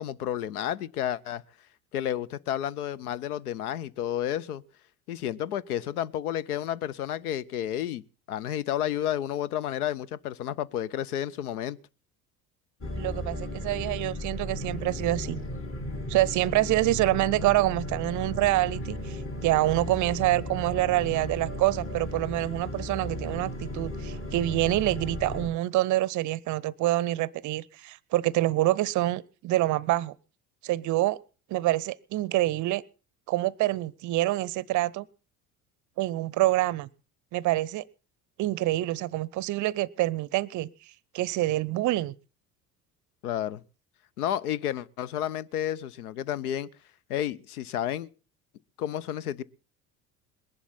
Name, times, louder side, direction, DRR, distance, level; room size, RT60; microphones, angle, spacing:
voice 1, 0.0-1.4 1.9-4.6 5.1-8.0 8.3-11.8 43.2-43.6 44.2-46.7 47.1-48.1 48.8-49.4, left 11 dB, 75° left, 0.7 m, -31 dB
sound 1, 12.8-25.5, left 1 dB, 30° left, 2.0 m, -35 dB
voice 2, 13.0-15.4 16.1-30.2 30.6-31.2 31.5-32.8 33.3-35.1 36.0-36.9 37.3-37.8 38.4-40.7 41.1-42.1, right 16 dB, 40° right, 0.6 m, -26 dB
20.5 x 11.5 x 4.2 m
figure-of-eight pair, 60°, 46 cm